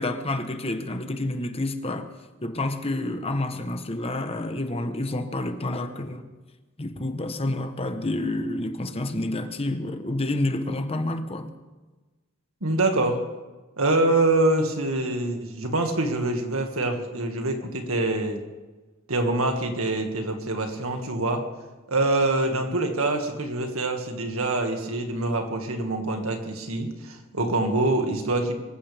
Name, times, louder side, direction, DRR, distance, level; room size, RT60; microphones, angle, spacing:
voice 1, 0.0-2.1 2.4-6.2 6.8-11.5, left 2 dB, 30° left, 1.0 m, -29 dB
voice 2, 12.6-13.3 13.8-18.4 19.1-21.5 21.9-28.6, right 2 dB, 75° right, 2.0 m, -25 dB
24.5 x 15.0 x 3.5 m
head